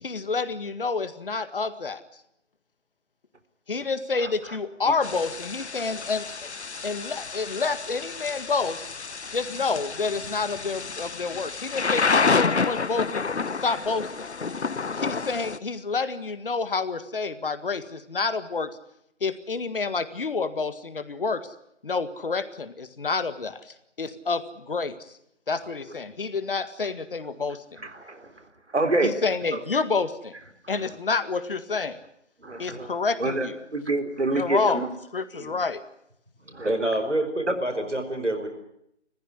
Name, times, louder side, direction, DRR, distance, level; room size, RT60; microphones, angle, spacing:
voice 1, 0.0-2.0 3.7-6.5 6.8-8.9 9.3-13.2 13.6-14.3 15.0-18.7 19.2-21.5 21.8-23.6 24.0-24.9 25.5-27.9 29.0-30.3 30.7-32.0 32.6-33.6 34.3-34.8 35.1-35.8, left 4 dB, 50° left, 12 dB, 1.9 m, -28 dB
Thunder / Rain, 5.0-15.6, left 4 dB, 70° left, 1.0 m, -29 dB
voice 2, 27.8-28.3 28.7-29.1 29.5-29.6 32.4-32.9 33.2-33.5 33.7-34.9 35.4-35.5 36.5-36.7, right 2 dB, 70° right, 7 dB, 3.8 m, -26 dB
voice 3, 36.6-38.5, right 1 dB, 90° right, 7 dB, 5.0 m, -27 dB
29.0 x 15.0 x 9.6 m, 0.76 s
figure-of-eight pair, 155°, 35 cm